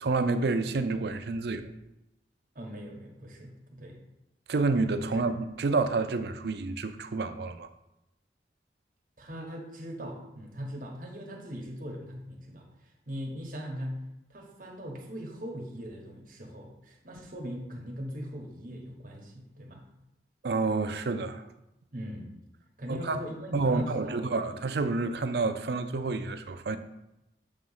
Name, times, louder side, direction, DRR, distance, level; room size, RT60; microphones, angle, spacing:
voice 1, 0.0-1.7 4.5-7.7 20.4-21.4 22.9-23.2 23.5-26.8, right 3 dB, 65° right, 0.5 m, -29 dB
voice 2, 2.5-4.0 5.2-5.3 9.2-12.7 13.1-14.0 14.3-19.8 21.9-22.3 22.8-24.4, equal, 50° right, 1.2 m, -40 dB
7.3 x 3.0 x 5.5 m
head